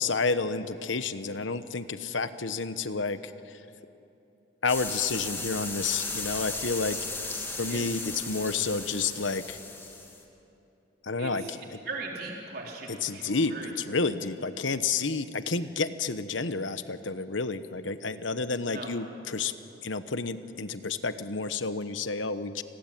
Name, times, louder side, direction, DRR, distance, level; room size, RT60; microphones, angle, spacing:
voice 1, 0.0-3.6 4.6-7.0 7.6-9.6 11.0-11.8 12.9-19.5 19.8-22.6, left 4 dB, 85° left, 11 dB, 1.1 m, -30 dB
sound 1, 4.7-10.2, left 3 dB, 15° left, 2.5 m, -36 dB
voice 2, 11.2-11.5 11.9-13.7 18.7-18.9, right 3 dB, 55° right, -1 dB, 4.3 m, -39 dB
29.0 x 20.5 x 9.1 m, 2.8 s
head